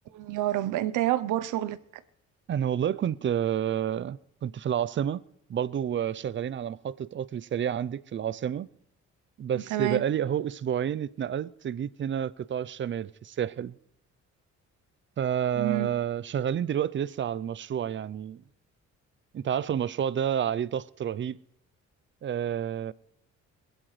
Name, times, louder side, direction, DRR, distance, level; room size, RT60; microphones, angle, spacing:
voice 1, 0.1-1.8 9.7-10.0 15.6-15.9, right 14 dB, 85° right, 0.7 m, -28 dB
voice 2, 2.5-5.2 5.5-8.7 9.4-13.8 15.2-18.4 19.3-21.4 22.2-22.9, right 9 dB, 40° right, 0.5 m, -29 dB
20.5 x 16.0 x 3.2 m
cardioid pair, 90°, 30 cm